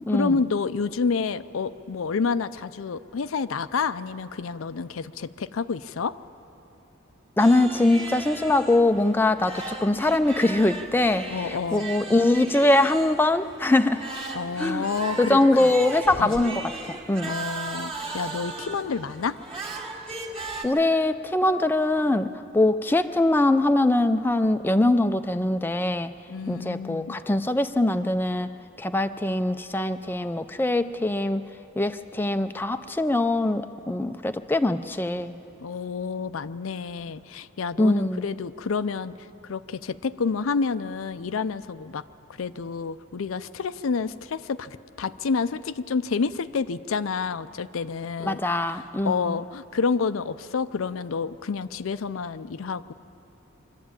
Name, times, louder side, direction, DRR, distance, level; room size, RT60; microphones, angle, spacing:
voice 1, 0.1-6.2 11.3-11.9 14.3-15.7 16.2-16.4 17.2-19.4 26.3-27.2 35.6-42.0 42.4-48.4 49.0-52.9, left 5 dB, 80° left, 13 dB, 0.5 m, -29 dB
voice 2, 7.4-14.0 14.6-14.9 15.2-17.4 20.6-26.1 26.5-28.5 28.8-31.4 31.8-35.3 37.8-38.2 48.3-49.4, left 2 dB, 10° left, 8 dB, 0.4 m, -22 dB
sound 1, 7.4-20.7, right 3 dB, 25° right, 1.8 m, -37 dB
24.0 x 12.0 x 8.8 m, 2.8 s
head